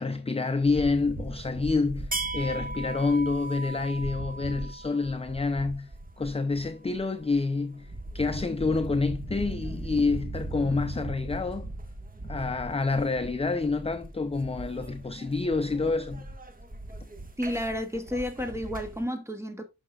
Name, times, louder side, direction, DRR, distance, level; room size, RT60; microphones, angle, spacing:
voice 1, 0.0-5.9 6.2-11.7 12.2-16.3, left 3 dB, 20° left, 0.6 m, -28 dB
sound 1, 0.6-19.0, right 2 dB, 25° right, 1.6 m, -38 dB
voice 2, 17.4-19.6, equal, 10° right, 2.0 m, -31 dB
11.0 x 6.1 x 2.4 m
wide cardioid pair, 115°, 33 cm